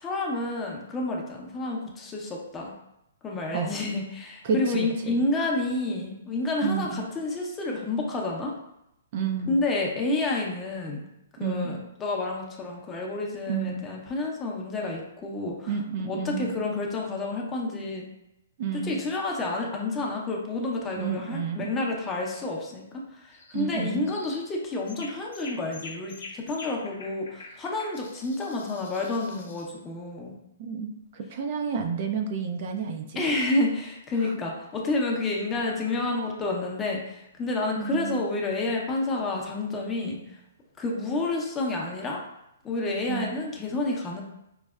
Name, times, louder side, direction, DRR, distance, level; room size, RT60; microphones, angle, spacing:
voice 1, 0.0-2.7 3.2-8.5 9.5-11.0 11.4-15.7 16.1-18.1 18.8-30.4 33.1-40.2 40.8-42.2 42.6-44.2, left 2 dB, 15° left, -1 dB, 0.6 m, -29 dB
voice 2, 4.4-5.2 6.6-7.0 9.1-9.6 11.4-11.8 13.5-13.8 15.7-16.6 18.6-19.0 21.0-21.7 23.5-24.1 30.6-33.2 34.2-34.3 37.8-38.2 43.1-43.4, right 6 dB, 45° right, 4 dB, 0.4 m, -30 dB
sound 1, 23.3-23.7 24.1-24.5 24.9-29.8, left 3 dB, 80° left, 0.8 m, -45 dB
4.6 x 2.0 x 2.3 m, 0.84 s
hypercardioid pair, 135°, 0 cm